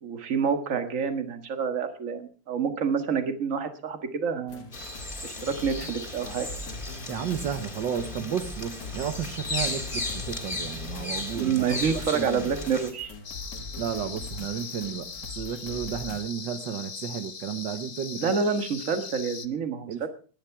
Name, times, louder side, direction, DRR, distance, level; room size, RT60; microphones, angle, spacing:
voice 1, 0.0-4.7 5.2-6.5 11.4-13.1 18.2-20.1, right 6 dB, 45° right, 8 dB, 1.8 m, -28 dB
sound 1, 4.5-16.2, left 3 dB, 50° left, 2.2 m, -42 dB
Bird vocalization bird call bird song, 4.7-12.9, left 2 dB, 25° left, 2.7 m, -36 dB
voice 2, 7.1-11.6 11.9-12.5 13.8-18.3 19.9-20.1, right 8 dB, 70° right, 8 dB, 1.6 m, -33 dB
sound 2, 13.2-19.5, left 6 dB, 70° left, 0.4 m, -40 dB
18.5 x 10.5 x 4.7 m, 0.39 s
omnidirectional pair, 2.1 m